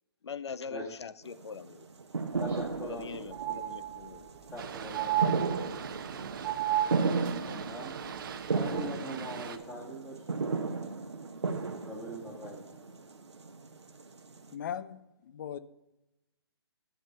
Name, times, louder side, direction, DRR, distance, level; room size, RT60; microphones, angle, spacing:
voice 1, 0.2-1.9 2.8-4.3, left 6 dB, 80° left, 0.4 m, -42 dB
sound 1, 1.2-14.5, right 4 dB, 85° right, 1.0 m, -35 dB
voice 2, 2.4-3.1 4.5-5.5 7.4-7.9 8.5-10.5 11.9-12.8, equal, 15° left, 1.9 m, -42 dB
sound 2, 2.4-2.5 2.8-2.9 3.3-4.3 4.9-6.0 6.4-7.4 8.7-8.8, right 13 dB, 15° right, 0.3 m, -32 dB
Boat Water vehicle, 4.6-9.6, right 7 dB, 50° right, 0.8 m, -42 dB
voice 3, 14.5-15.6, left 9 dB, 45° left, 0.6 m, -39 dB
11.5 x 6.0 x 5.5 m
figure-of-eight pair, 135°, 14 cm